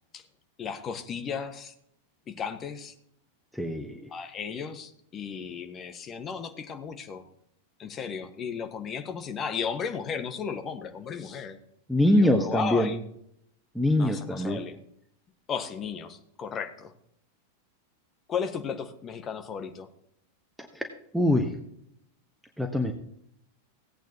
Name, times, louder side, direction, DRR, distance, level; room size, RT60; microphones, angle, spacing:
voice 1, 0.6-1.7 2.3-2.9 4.1-7.2 7.8-11.6 12.1-13.0 14.0-14.8 15.5-16.9 18.3-19.9, left 6 dB, 25° left, 7 dB, 1.4 m, -35 dB
voice 2, 3.5-4.1 11.9-12.9 13.7-14.6 21.1-21.5 22.6-22.9, left 1 dB, ahead, 4 dB, 1.1 m, -23 dB
17.0 x 8.9 x 2.9 m, 0.71 s
figure-of-eight pair, 90°, 0 cm